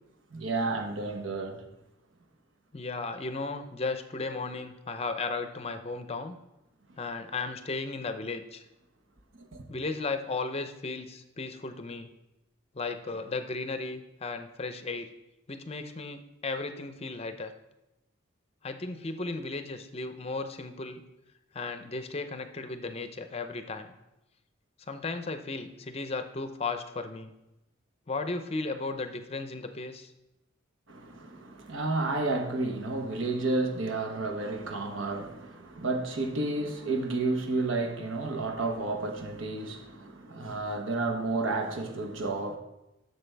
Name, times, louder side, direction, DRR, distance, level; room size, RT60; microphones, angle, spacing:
voice 1, 0.3-1.6 9.4-9.6 30.9-42.6, right 2 dB, 75° right, 1.1 m, -31 dB
voice 2, 2.7-6.3 7.0-8.6 9.7-12.1 12.7-15.1 15.5-17.5 18.6-21.0 21.5-23.9 24.9-27.3 28.1-30.1, left 3 dB, 30° left, 0.6 m, -35 dB
11.0 x 6.8 x 3.4 m
head